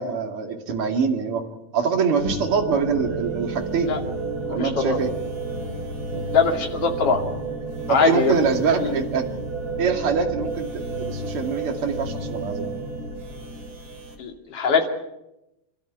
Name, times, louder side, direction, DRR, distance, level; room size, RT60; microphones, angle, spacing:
voice 1, 0.0-1.4 1.7-3.9 4.5-5.1 7.9-9.3 9.8-12.7, right 6 dB, 45° right, 3 dB, 3.1 m, -24 dB
sound 1, 2.2-14.2, right 2 dB, 30° right, 3.5 m, -31 dB
voice 2, 4.4-5.0 6.3-7.2 7.9-8.4 8.7-8.9 14.2-14.9, left 5 dB, 50° left, 3 dB, 3.3 m, -22 dB
27.5 x 13.0 x 9.4 m, 0.91 s
omnidirectional pair, 3.6 m